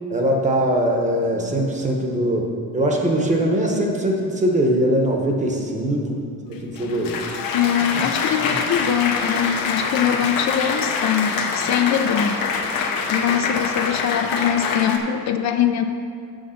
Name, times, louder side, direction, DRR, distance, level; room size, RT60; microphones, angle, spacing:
voice 1, 0.1-6.2 6.5-7.2, right 1 dB, 20° right, 1 dB, 0.9 m, -21 dB
Applause, 6.5-15.0, left 5 dB, 75° left, 0.9 m, -25 dB
voice 2, 7.5-12.4 13.1-15.8, left 9 dB, 55° left, 7 dB, 0.4 m, -22 dB
7.1 x 6.4 x 5.7 m, 2.4 s
cardioid pair, 165°, 34 cm